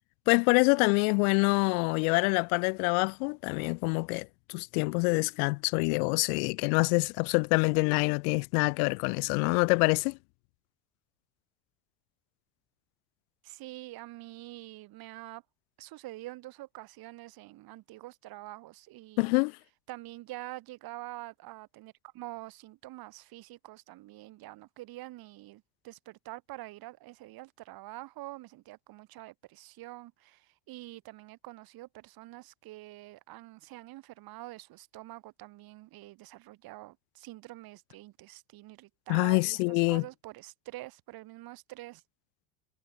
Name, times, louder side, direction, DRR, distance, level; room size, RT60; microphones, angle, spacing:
voice 1, 0.3-10.2 19.2-19.6 39.1-40.0, left 36 dB, 75° left, 0.7 m, -26 dB
voice 2, 13.4-15.4 15.8-19.3 19.9-42.0, right 18 dB, 55° right, 7.9 m, -46 dB
supercardioid pair, 135°, 43 cm